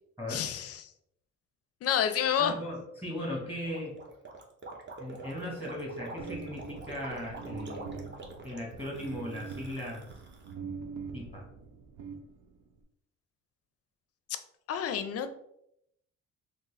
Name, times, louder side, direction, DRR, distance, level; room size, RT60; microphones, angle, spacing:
voice 1, 0.3-0.9 1.8-2.5 14.7-15.3, left 9 dB, 50° left, 10 dB, 0.4 m, -29 dB
voice 2, 2.4-4.0 5.0-8.1 8.4-10.0 11.1-11.5, left 1 dB, 5° right, -2 dB, 1.0 m, -38 dB
Gurgling, 3.6-10.5, right 2 dB, 40° right, 0.8 m, -46 dB
sound 1, 6.2-12.8, right 5 dB, 80° right, 0.5 m, -44 dB
3.8 x 2.0 x 3.2 m, 0.76 s
cardioid pair, 90°, 30 cm